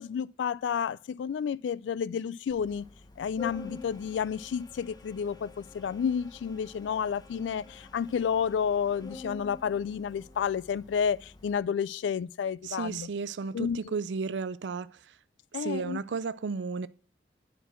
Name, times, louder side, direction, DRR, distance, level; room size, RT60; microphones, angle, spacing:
voice 1, 0.0-2.9 3.2-13.1 13.5-13.9 15.5-16.0, left 7 dB, 85° left, 0.3 m, -31 dB
Organ, 2.5-11.6, left 4 dB, 25° left, 0.8 m, -48 dB
voice 2, 12.6-14.9 15.5-16.9, right 5 dB, 80° right, 0.4 m, -33 dB
10.0 x 4.5 x 6.2 m
head